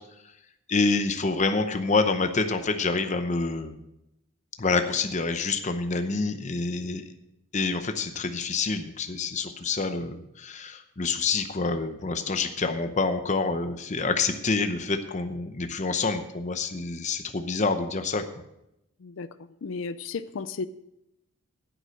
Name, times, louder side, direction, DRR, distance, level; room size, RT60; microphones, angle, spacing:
voice 1, 0.7-3.8 4.6-7.0 7.5-18.2, left 4 dB, 35° left, 7 dB, 0.8 m, -27 dB
voice 2, 19.6-20.7, left 4 dB, 65° left, 13 dB, 0.4 m, -33 dB
10.0 x 8.2 x 6.4 m, 0.85 s
head